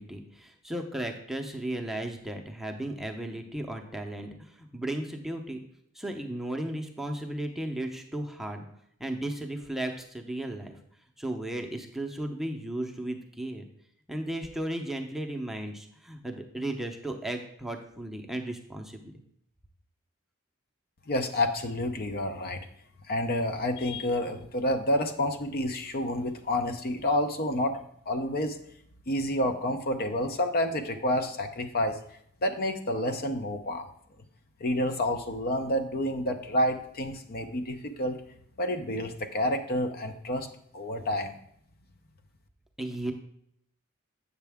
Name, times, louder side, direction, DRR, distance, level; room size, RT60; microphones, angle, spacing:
voice 1, 0.0-5.6 5.9-8.7 9.0-10.8 11.2-13.7 14.1-19.0 42.8-43.1, right 1 dB, ahead, 2 dB, 0.7 m, -35 dB
voice 2, 21.1-22.6 23.1-27.8 28.1-28.6 29.1-32.0 32.4-33.9 34.6-38.2 38.6-40.5 40.7-41.4, left 1 dB, 45° left, 6 dB, 0.7 m, -29 dB
8.2 x 6.6 x 3.5 m, 0.69 s
head